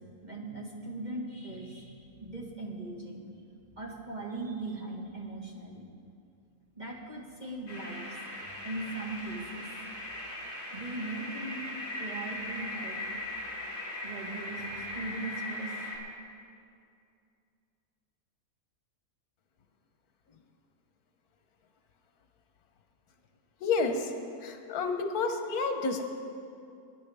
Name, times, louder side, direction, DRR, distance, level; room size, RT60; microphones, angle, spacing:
voice 1, 0.2-3.2 3.8-5.8 6.8-8.0 8.6-9.7 10.0-10.1 10.7-11.6 12.0-13.0 14.0-15.9, right 2 dB, 30° right, -2 dB, 1.6 m, -39 dB
sound 1, 7.7-16.0, left 1 dB, 45° left, 2.8 m, -39 dB
voice 2, 23.6-24.1 24.4-26.0, left 4 dB, 80° left, 6 dB, 1.4 m, -30 dB
21.0 x 10.5 x 3.5 m, 2.5 s
omnidirectional pair, 1.6 m